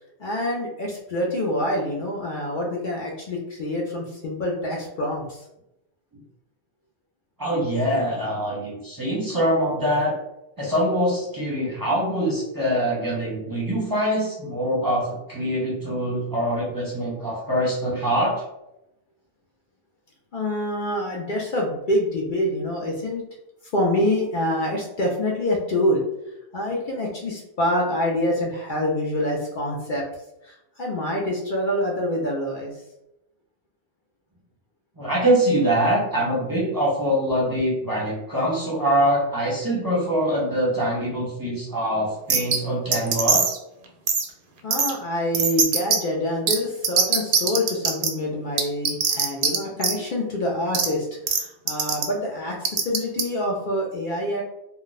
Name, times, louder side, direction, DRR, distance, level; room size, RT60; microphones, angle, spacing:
voice 1, 0.2-5.4 20.3-23.2 23.7-26.0 26.5-30.0 30.4-32.7 44.6-54.4, left 1 dB, 55° left, -2 dB, 0.7 m, -26 dB
voice 2, 7.4-10.1 10.6-18.4 35.0-43.6, equal, 20° right, -6 dB, 0.7 m, -24 dB
sound 1, 42.3-42.6 42.9-43.6 44.1-44.2 44.7-44.9 45.3-46.0 46.5-46.6 46.8-48.1 48.6-49.6 49.8-49.9 50.7-50.9 51.3-51.4 51.7-52.0 52.6-53.2, right 6 dB, 60° right, 0.7 m, -20 dB
2.4 x 2.2 x 3.9 m, 0.87 s
omnidirectional pair, 1.1 m